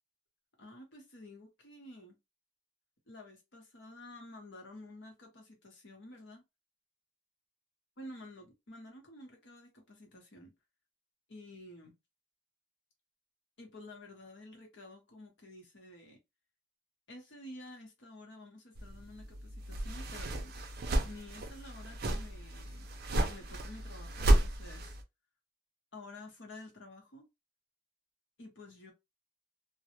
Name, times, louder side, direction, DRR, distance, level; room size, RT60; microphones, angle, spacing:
voice 1, 0.6-2.2 3.1-6.4 8.0-10.5 11.3-12.0 13.6-16.2 17.1-20.6 21.0-22.9 23.2-24.9 25.9-27.3 28.4-28.9, left 1 dB, 65° left, 0.9 m, -51 dB
sound 1, 18.8-25.0, right 1 dB, 50° right, 0.4 m, -32 dB
2.2 x 2.0 x 2.8 m
head